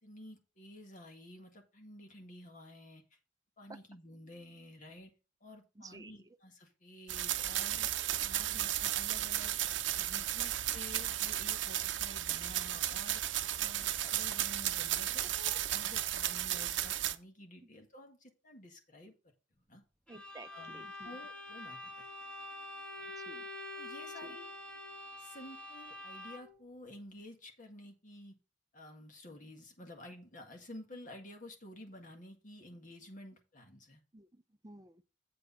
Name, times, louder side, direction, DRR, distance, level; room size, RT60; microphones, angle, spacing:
voice 1, 0.0-3.0 3.6-5.1 5.4-7.9 8.2-9.6 10.0-19.1 19.7-19.8 20.5-22.1 23.0-23.1 23.7-24.5 25.2-28.4 28.7-34.0, left 1 dB, 45° left, 1.8 m, -52 dB
voice 2, 5.8-6.2 8.5-8.6 16.5-16.6 20.1-21.1 23.2-23.4 24.2-24.4 34.1-35.0, right 2 dB, 20° right, 0.6 m, -53 dB
sound 1, 7.1-17.2, right 12 dB, 80° right, 0.7 m, -34 dB
Bowed string instrument, 20.1-26.7, left 2 dB, 5° left, 1.5 m, -46 dB
8.0 x 4.9 x 5.5 m
head